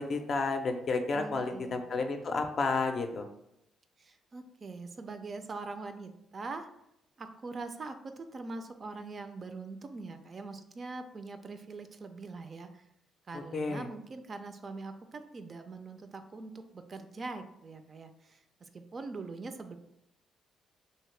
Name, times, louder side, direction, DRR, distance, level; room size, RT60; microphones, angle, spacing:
voice 1, 0.0-3.3 13.3-13.9, left 3 dB, 50° left, 5 dB, 0.4 m, -31 dB
voice 2, 1.1-1.8 4.0-6.7 7.2-12.8 13.3-19.8, right 3 dB, 40° right, 8 dB, 0.3 m, -43 dB
2.9 x 2.8 x 3.2 m, 0.83 s
cardioid pair, 90°, 0 cm